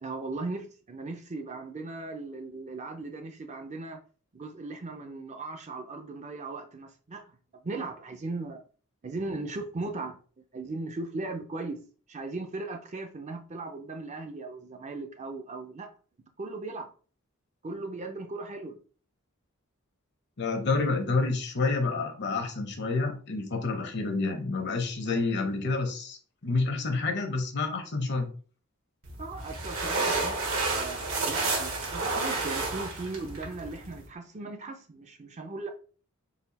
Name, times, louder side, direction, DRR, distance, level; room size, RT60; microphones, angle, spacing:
voice 1, 0.0-4.0 4.3-8.6 9.0-10.2 10.5-11.8 12.1-15.9 16.4-16.9 17.6-18.8 29.2-35.7, right 3 dB, 35° right, 0.5 m, -38 dB
voice 2, 20.4-28.3, left 3 dB, 55° left, 0.8 m, -29 dB
sound 1, 29.0-34.1, right 3 dB, 75° right, 1.4 m, -31 dB
4.1 x 2.4 x 4.0 m
head